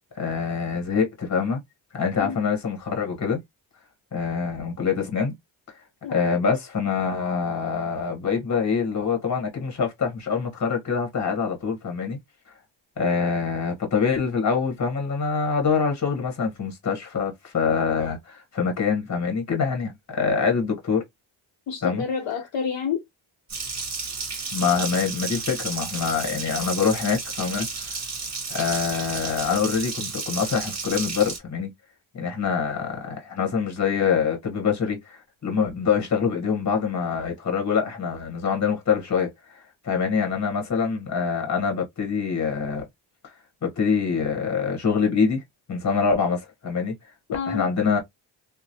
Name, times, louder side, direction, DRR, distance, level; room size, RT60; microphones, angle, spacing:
voice 1, 0.1-1.6 1.9-3.4 4.1-5.3 6.1-12.2 13.0-21.0 21.8-22.0 24.5-28.0 28.5-31.7 32.1-42.9 43.6-45.4 45.7-46.9 47.5-48.0, left 6 dB, 35° left, 1.1 m, -25 dB
voice 2, 6.0-6.4 21.7-23.1 47.3-47.7, left 6 dB, 65° left, 0.7 m, -29 dB
Water tap faucet, 23.5-31.4, right 4 dB, 30° right, 1.0 m, -32 dB
3.0 x 2.0 x 2.6 m
cardioid pair, 70°, 50 cm